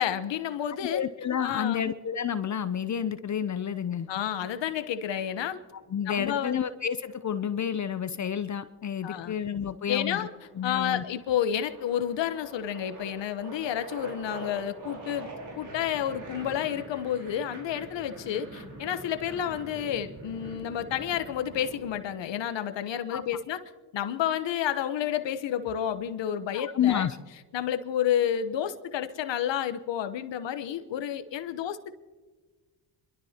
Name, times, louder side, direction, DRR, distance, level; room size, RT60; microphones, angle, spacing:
voice 1, 0.0-1.0 1.4-1.8 4.1-5.6 6.1-6.6 9.0-9.4 9.9-10.3 10.6-15.3 15.6-23.6 23.9-27.1 27.5-31.9, left 10 dB, 65° left, 10 dB, 1.1 m, -30 dB
voice 2, 0.9-4.1 5.9-10.3 10.6-11.0 23.1-23.2 26.5-27.2, left 8 dB, 40° left, 12 dB, 0.6 m, -30 dB
sound 1, 4.1-5.2 7.0-8.3 9.3-9.7 10.0-22.0, right 2 dB, 60° right, 4.3 m, -44 dB
28.5 x 12.5 x 2.9 m, 1.3 s
supercardioid pair, 60°, 47 cm